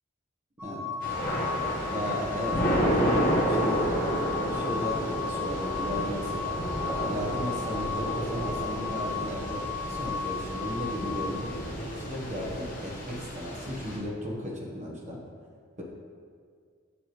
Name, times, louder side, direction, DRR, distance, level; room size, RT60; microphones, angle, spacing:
sound 1, 0.6-11.3, left 6 dB, 5° right, 1.5 m, -35 dB
voice 1, 0.6-0.9 1.9-3.9 4.4-6.6 7.1-11.6 12.0-15.2 15.8-15.9, left 1 dB, 35° right, -3 dB, 1.1 m, -35 dB
Thunder / Rain, 1.0-14.0, equal, 45° left, 1.4 m, -31 dB
7.2 x 6.9 x 3.1 m, 2.1 s
head